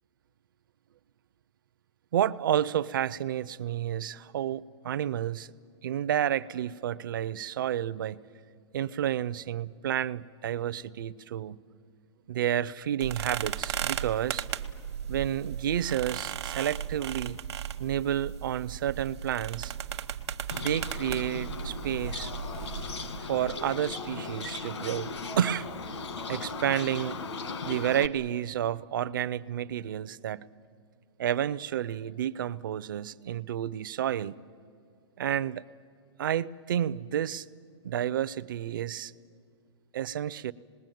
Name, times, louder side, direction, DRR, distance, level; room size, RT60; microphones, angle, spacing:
voice 1, 2.1-5.5 5.8-8.2 8.7-11.6 12.3-14.4 15.1-17.4 17.8-19.7 20.5-22.3 23.2-25.7 26.3-27.2 27.7-30.5 31.2-34.4 35.2-35.6 36.2-37.5 37.8-39.1 39.9-40.5, right 10 dB, 45° right, 0.5 m, -30 dB
sound 1, 13.0-23.2, right 9 dB, 65° right, 1.0 m, -36 dB
Bird, 20.5-28.1, left 4 dB, 75° left, 1.7 m, -37 dB
26.0 x 20.5 x 9.2 m
hypercardioid pair, 175°, 15 cm